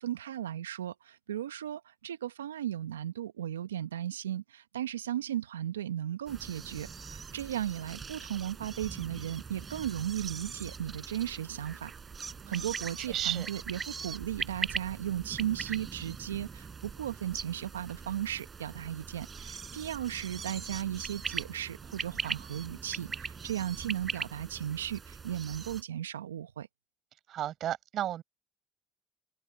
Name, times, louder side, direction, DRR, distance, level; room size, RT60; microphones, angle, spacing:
voice 1, 0.0-11.9 12.5-26.7, right 11 dB, 85° right, 1.2 m, -36 dB
sound 1, 6.3-25.8, right 5 dB, 35° right, 4.1 m, -41 dB
voice 2, 13.0-13.5 27.3-28.2, right 11 dB, 55° right, 6.6 m, -33 dB
hypercardioid pair, 55°, 0 cm